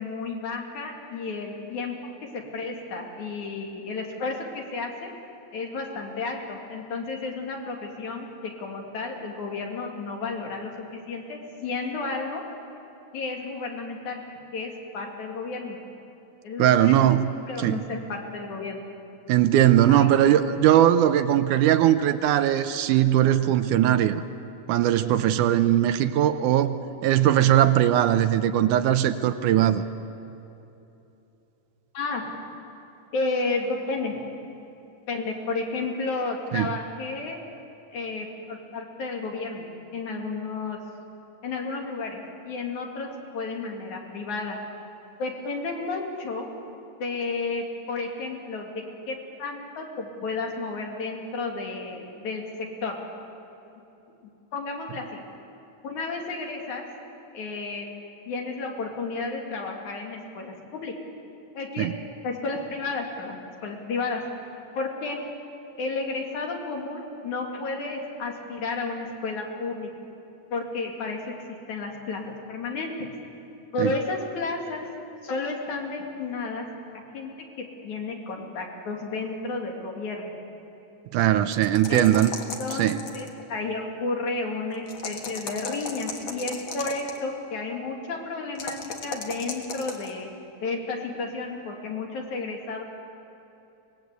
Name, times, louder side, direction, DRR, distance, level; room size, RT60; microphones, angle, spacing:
voice 1, 0.0-2.0 2.3-5.1 5.5-12.4 13.1-14.2 14.5-15.8 16.4-17.0 17.5-18.9 19.9-20.1 31.9-32.3 33.1-34.2 35.1-37.4 37.9-39.7 39.9-40.8 41.4-44.6 45.2-46.5 47.0-53.0 54.5-55.2 55.8-56.8 57.3-57.9 58.3-60.9 61.5-61.9 62.2-64.2 64.8-65.2 65.8-69.9 70.5-73.1 73.7-74.9 75.2-76.7 77.1-77.3 77.6-80.3 81.9-82.1 82.6-90.3 90.6-92.8, left 3 dB, 65° left, 1 dB, 3.7 m, -32 dB
voice 2, 16.6-17.8 19.3-24.2 24.7-26.8 27.0-29.8 36.5-36.8 61.8-61.9 73.8-73.9 81.1-82.3 82.8-83.0, right 11 dB, 80° right, 10 dB, 2.1 m, -20 dB
sound 1, 81.5-83.4 84.9-87.2 88.6-90.1, left 4 dB, 45° left, 1.9 m, -35 dB
24.5 x 20.0 x 8.2 m, 2.9 s
omnidirectional pair, 3.8 m